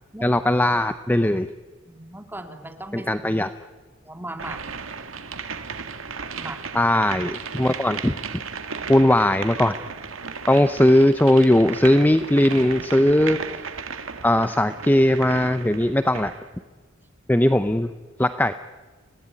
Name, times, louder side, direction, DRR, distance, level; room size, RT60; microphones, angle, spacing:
voice 1, 0.2-1.5 2.9-3.5 6.7-8.4 8.9-9.8 10.5-13.4 14.2-16.3 17.3-17.9 18.2-18.5, left 1 dB, 10° left, 11 dB, 0.7 m, -19 dB
voice 2, 1.9-3.1 4.0-4.6 6.4-6.7, right 1 dB, 10° right, 5 dB, 2.7 m, -37 dB
sound 1, 4.4-16.5, right 5 dB, 85° right, 1.9 m, -35 dB
30.0 x 18.0 x 9.7 m, 1.4 s
head